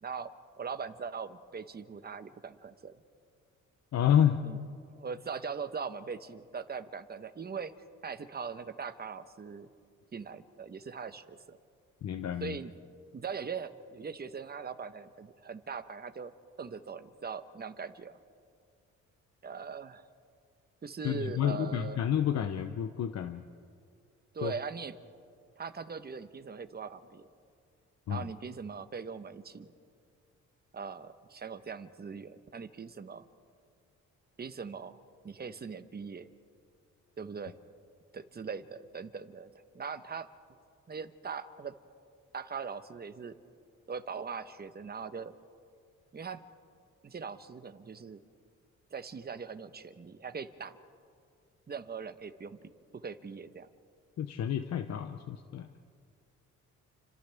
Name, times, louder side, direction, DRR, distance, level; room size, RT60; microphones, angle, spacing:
voice 1, 0.0-3.0 4.4-4.6 4.9-7.7 8.0-9.7 10.1-11.6 12.4-12.8 13.1-16.3 16.6-18.2 19.4-20.1 20.8-22.0 24.3-24.9 25.6-27.3 28.1-29.7 30.7-33.3 34.4-35.0 35.2-36.3 37.2-37.6 38.1-40.3 40.9-41.7 42.3-43.4 43.9-45.4 46.1-46.4 47.0-48.2 48.9-50.8 51.7-52.6 52.9-53.7, right 5 dB, 30° right, 10 dB, 1.1 m, -41 dB
voice 2, 3.9-4.4 12.0-12.6 21.0-23.4 24.4-24.5 28.1-28.2 54.2-55.7, left 9 dB, 60° left, 8 dB, 0.9 m, -29 dB
30.0 x 26.0 x 3.5 m, 2.2 s
cardioid pair, 90°, 30 cm